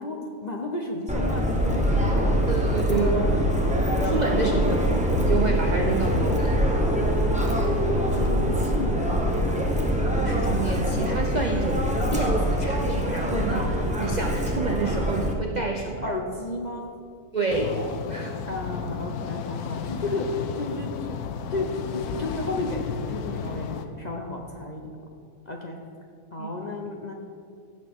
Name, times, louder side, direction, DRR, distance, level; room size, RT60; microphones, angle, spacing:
voice 1, 0.0-2.6 3.0-3.4 4.3-4.8 8.1-9.4 16.0-16.9 18.5-21.1 21.5-23.7 24.0-25.0 25.5-25.8 26.3-27.1, left 2 dB, 40° left, 0 dB, 0.6 m, -32 dB
Subway metro underground, 1.1-15.3, equal, 5° right, 0.6 m, -24 dB
voice 2, 2.5-3.2 4.0-4.8 5.2-6.6 10.2-16.1 17.3-18.4 26.4-26.5, right 4 dB, 65° right, 2 dB, 0.4 m, -29 dB
sound 1, 17.5-23.9, left 6 dB, 80° left, 1.1 m, -33 dB
16.0 x 6.6 x 3.6 m, 2.3 s
omnidirectional pair, 1.7 m